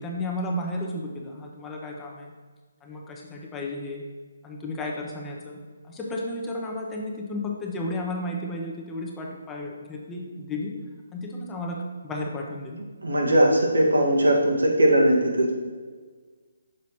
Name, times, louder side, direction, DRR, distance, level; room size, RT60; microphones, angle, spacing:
voice 1, 0.0-2.3 2.8-4.0 4.4-10.8 11.1-12.8, left 1 dB, 15° left, -1 dB, 0.8 m, -33 dB
voice 2, 13.0-15.5, right 1 dB, 85° right, -1 dB, 1.5 m, -20 dB
6.3 x 4.1 x 4.3 m, 1.5 s
figure-of-eight pair, 150°, 0 cm